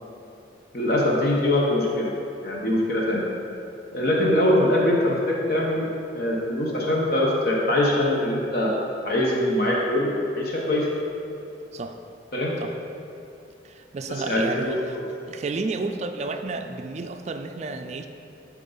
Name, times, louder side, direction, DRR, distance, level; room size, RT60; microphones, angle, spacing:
voice 1, 0.7-2.1 2.4-3.2 3.9-5.9 6.1-8.7 9.0-10.9 12.3-12.6 14.1-15.1, left 1 dB, 55° left, -3 dB, 1.0 m, -23 dB
voice 2, 13.6-15.0 15.3-18.1, right 3 dB, 35° right, 6 dB, 0.3 m, -31 dB
11.5 x 4.5 x 3.9 m, 2.8 s
head